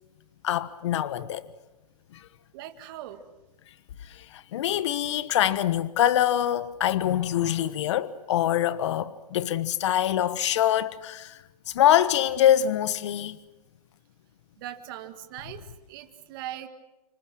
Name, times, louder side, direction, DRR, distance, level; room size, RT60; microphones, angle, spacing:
voice 1, 0.4-1.5 2.1-2.3 4.0-13.4, left 11 dB, 45° left, 1.2 m, -24 dB
voice 2, 2.5-3.2 14.6-16.7, right 12 dB, 35° right, 2.0 m, -40 dB
26.5 x 26.5 x 6.2 m
hypercardioid pair, 155°, 21 cm